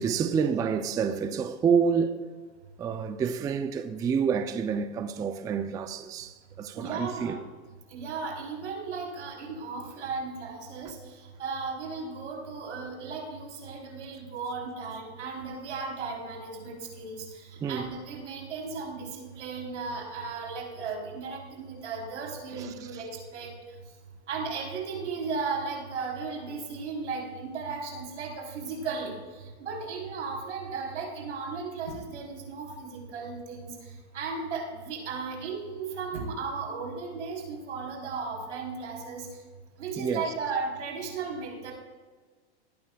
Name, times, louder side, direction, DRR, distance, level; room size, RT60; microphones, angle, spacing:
voice 1, 0.0-2.2 2.8-7.4 17.6-17.9 22.5-22.7 40.0-40.3, right 6 dB, 10° right, 0.3 m, -28 dB
voice 2, 6.7-7.4 7.9-11.0 11.4-23.5 24.3-33.7 34.1-39.3 39.8-41.7, right 4 dB, 90° right, 3.5 m, -35 dB
19.0 x 9.2 x 2.3 m
hypercardioid pair, 125°, 34 cm